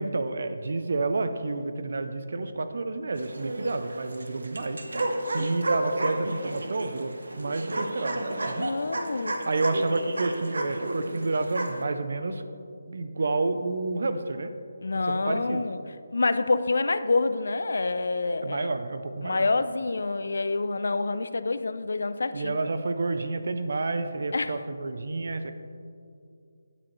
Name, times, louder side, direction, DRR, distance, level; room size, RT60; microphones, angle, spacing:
voice 1, 0.0-4.8 5.3-8.7 9.4-12.4 12.9-14.5 15.1-15.6 18.4-19.5 22.3-25.5, right 3 dB, 55° right, 9 dB, 0.5 m, -29 dB
sound 1, 3.2-11.8, right 1 dB, 85° right, 0.9 m, -32 dB
voice 2, 8.6-9.3 14.8-15.8 16.1-18.7 19.2-22.6 24.3-24.6, left 3 dB, 70° left, 12 dB, 0.4 m, -27 dB
8.9 x 8.4 x 3.1 m, 2.5 s
hypercardioid pair, 175°, 0 cm